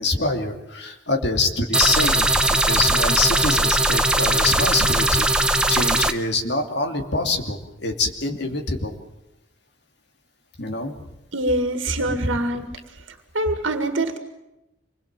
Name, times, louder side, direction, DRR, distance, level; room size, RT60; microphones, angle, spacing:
voice 1, 0.0-2.4 2.7-9.0 10.6-10.9, left 3 dB, 60° left, 4 dB, 2.7 m, -25 dB
sound 1, 1.7-6.1, right 2 dB, 5° right, 0.8 m, -19 dB
voice 2, 11.3-12.7 13.3-14.2, right 1 dB, 80° right, 6 dB, 2.0 m, -24 dB
26.0 x 21.0 x 7.5 m, 0.92 s
head